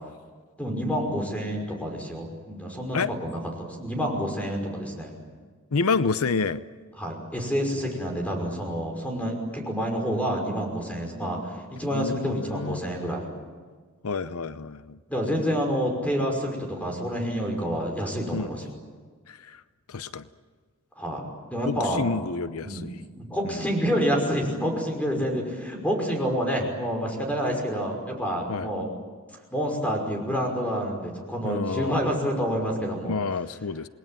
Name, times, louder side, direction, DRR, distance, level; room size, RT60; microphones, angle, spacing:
voice 1, 0.6-5.1 7.0-13.3 15.1-18.7 21.0-22.0 22.6-22.9 23.2-28.9 29.5-33.2, equal, 5° left, 2 dB, 5.6 m, -28 dB
voice 2, 5.7-6.6 11.9-12.8 14.0-15.0 18.3-18.5 19.3-19.6 19.9-20.3 21.6-23.0 23.4-23.8 28.5-28.7 31.4-32.1 33.0-33.9, left 4 dB, 85° left, 14 dB, 0.7 m, -29 dB
28.5 x 20.0 x 9.1 m, 1.5 s
head